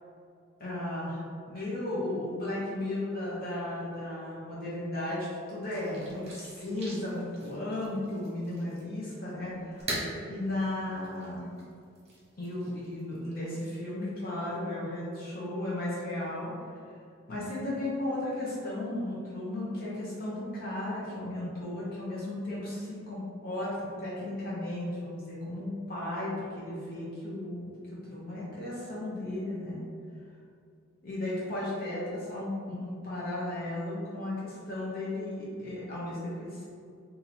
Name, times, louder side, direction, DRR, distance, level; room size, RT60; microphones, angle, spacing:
voice 1, 0.6-11.5 12.4-16.7 17.3-29.8 31.0-36.7, left 1 dB, 50° left, -7 dB, 0.9 m, -35 dB
sound 1, 5.6-14.5, right 1 dB, 35° right, 1.1 m, -44 dB
2.9 x 2.7 x 4.2 m, 2.3 s
head